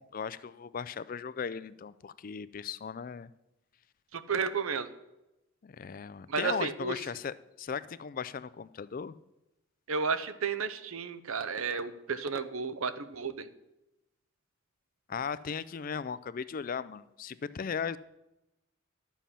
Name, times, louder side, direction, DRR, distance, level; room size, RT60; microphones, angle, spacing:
voice 1, 0.0-3.3 5.6-9.1 15.1-18.0, left 6 dB, 40° left, 16 dB, 0.3 m, -37 dB
voice 2, 4.1-4.9 6.3-7.0 9.9-13.5, right 5 dB, 75° right, 12 dB, 0.7 m, -32 dB
11.5 x 7.3 x 5.6 m, 0.94 s
head